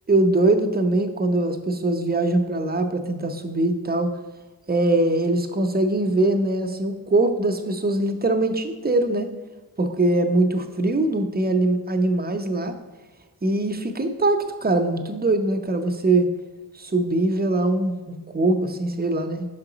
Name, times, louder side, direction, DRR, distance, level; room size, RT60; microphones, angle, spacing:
voice 1, 0.1-4.1 4.7-9.3 9.8-12.7 13.4-16.3 16.7-19.5, right 2 dB, 25° right, 6 dB, 0.6 m, -22 dB
5.6 x 3.8 x 4.9 m, 1.2 s
wide cardioid pair, 70°, 41 cm